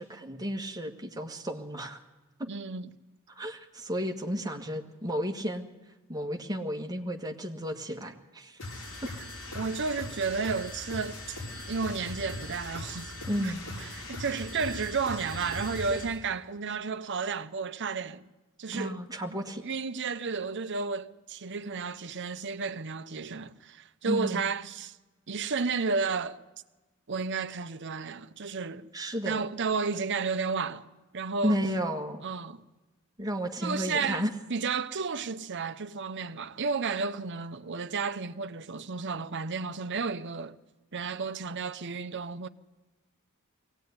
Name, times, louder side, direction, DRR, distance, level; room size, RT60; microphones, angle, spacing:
voice 1, 0.0-2.0 2.4-2.5 3.4-5.7 6.1-8.6 13.3-13.6 18.7-19.6 24.0-24.4 28.9-29.4 31.4-32.2 33.2-34.3, equal, 20° right, 1.8 m, -32 dB
voice 2, 2.5-3.0 9.5-11.4 11.7-13.5 13.8-18.3 18.6-19.0 19.6-25.0 25.3-26.4 27.1-28.9 29.2-31.6 32.2-32.6 33.6-34.2 34.5-40.6 40.9-42.5, right 4 dB, 55° right, 0.9 m, -32 dB
sound 1, 8.6-16.2, left 2 dB, 70° left, 5.6 m, -40 dB
22.5 x 17.5 x 9.7 m
head